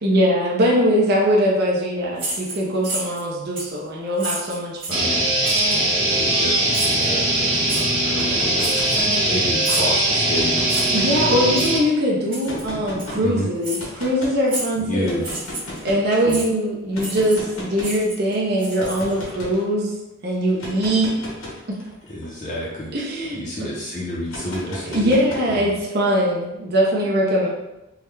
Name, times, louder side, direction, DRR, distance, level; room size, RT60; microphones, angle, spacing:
voice 1, 0.0-5.1 10.9-15.3 15.8-19.9 20.2-21.1 21.7-21.8 22.9-23.7 24.9-27.5, equal, 50° right, -4 dB, 0.6 m, -21 dB
sound 1, 2.2-3.2 3.6-3.8 4.2-5.1 5.4-5.8 6.7-7.1 7.7-7.9 8.6-9.3 9.6-10.0 10.7-11.0 11.5-11.7 12.3-12.6 13.0-13.1 13.6-13.8 14.5-14.8 15.2-15.8 16.3-16.5 17.0-17.5 17.8-19.3, right 2 dB, 25° right, 1.3 m, -31 dB
voice 2, 4.9-5.3 6.1-8.8 9.2-10.5 13.2-13.5 14.8-15.3 16.2-16.4 22.1-22.9 23.3-25.7, equal, 35° left, -6 dB, 0.5 m, -30 dB
sound 2, 4.9-11.8, right 1 dB, 70° right, 1.1 m, -20 dB
sound 3, 8.1-9.6 10.2-11.8 12.4-13.2 13.8-14.4 15.0-16.1 16.9-18.0 18.8-19.6 20.5-23.3 24.3-25.8, left 1 dB, 80° left, 0.9 m, -36 dB
3.5 x 2.1 x 3.2 m, 0.94 s
head